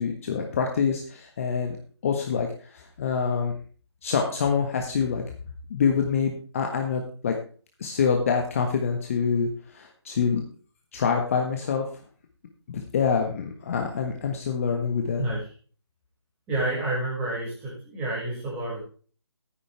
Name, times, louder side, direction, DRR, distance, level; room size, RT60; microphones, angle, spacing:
voice 1, 0.0-1.8 2.0-3.5 4.0-5.2 5.7-7.3 7.8-10.4 10.9-11.8 12.7-15.2, left 6 dB, 30° left, 2 dB, 1.5 m, -26 dB
voice 2, 16.5-18.8, right 2 dB, 10° right, -5 dB, 5.8 m, -29 dB
14.0 x 9.6 x 3.4 m, 0.40 s
figure-of-eight pair, 160°, 15 cm